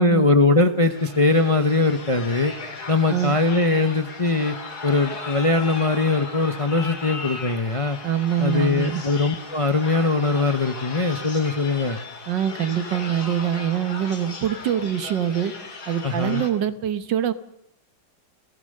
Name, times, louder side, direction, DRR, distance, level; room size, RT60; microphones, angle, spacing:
voice 1, 0.0-2.5 2.9-4.6 4.8-8.0 8.4-12.0 16.0-16.4, left 3 dB, 30° left, 9 dB, 0.7 m, -21 dB
sound 1, 0.8-16.5, left 3 dB, 60° left, 3.0 m, -37 dB
voice 2, 8.0-9.0 12.3-15.5 15.9-17.3, right 10 dB, 80° right, 13 dB, 1.9 m, -24 dB
29.0 x 16.0 x 6.6 m, 0.78 s
omnidirectional pair, 1.9 m